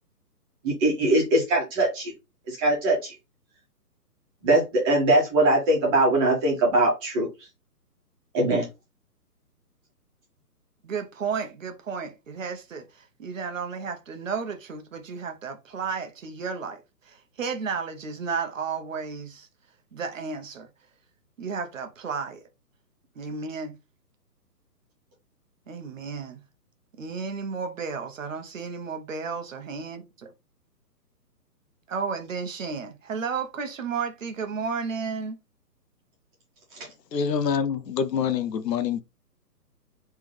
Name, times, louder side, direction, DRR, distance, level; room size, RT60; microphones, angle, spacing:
voice 1, 0.6-2.1 2.5-3.1 4.4-7.3 8.3-8.7, right 2 dB, 15° right, 1.4 m, -21 dB
voice 2, 10.8-19.5 19.9-20.7 21.4-22.4 23.2-23.8 25.7-26.4 27.0-30.0 31.9-35.4, right 5 dB, 50° right, 0.9 m, -33 dB
voice 3, 37.1-39.0, left 7 dB, 80° left, 0.8 m, -26 dB
3.7 x 3.3 x 3.2 m
hypercardioid pair, 160°, 49 cm